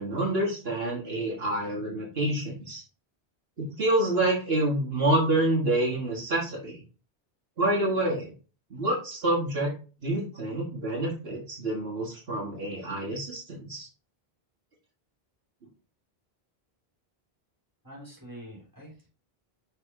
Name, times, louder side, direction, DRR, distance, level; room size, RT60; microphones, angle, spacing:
voice 1, 0.0-2.8 3.6-6.8 7.6-8.3 8.7-9.7 10.0-13.9, right 1 dB, 70° right, -4 dB, 1.8 m, -27 dB
voice 2, 17.8-19.1, equal, 20° right, -4 dB, 3.3 m, -45 dB
6.3 x 4.3 x 3.7 m, 0.35 s
omnidirectional pair, 1.1 m